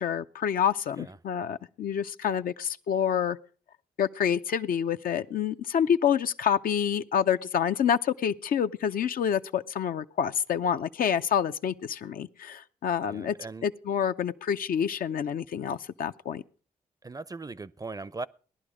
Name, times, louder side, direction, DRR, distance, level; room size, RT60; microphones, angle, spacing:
voice 1, 0.0-3.4 4.0-13.3 13.6-16.4, left 8 dB, 70° left, 0.6 m, -27 dB
voice 2, 13.1-13.7 17.0-18.3, right 3 dB, 25° right, 0.5 m, -39 dB
17.5 x 11.0 x 4.9 m
supercardioid pair, 45°, 16 cm